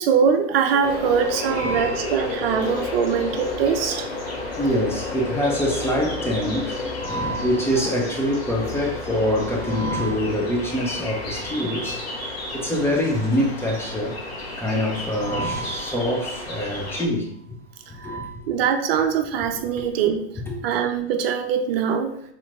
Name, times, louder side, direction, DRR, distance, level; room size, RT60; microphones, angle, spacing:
voice 1, 0.0-4.3 18.5-20.3 20.6-22.1, right 7 dB, 55° right, 0.6 m, -22 dB
sound 1, 0.8-17.0, left 2 dB, 60° left, 1.4 m, -32 dB
voice 2, 1.4-1.9 2.6-2.7 4.6-12.0 12.5-14.2 14.6-17.3 17.9-18.3, equal, 5° left, 0.6 m, -25 dB
4.4 x 3.7 x 2.5 m
hypercardioid pair, 105°, 34 cm